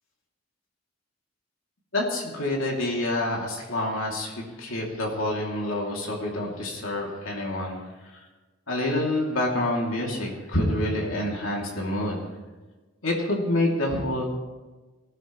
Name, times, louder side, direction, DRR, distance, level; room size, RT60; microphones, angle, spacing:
voice 1, 1.9-7.8 8.7-12.3 13.0-14.3, left 1 dB, 90° left, -1 dB, 2.8 m, -27 dB
19.0 x 15.0 x 3.2 m, 1.3 s
head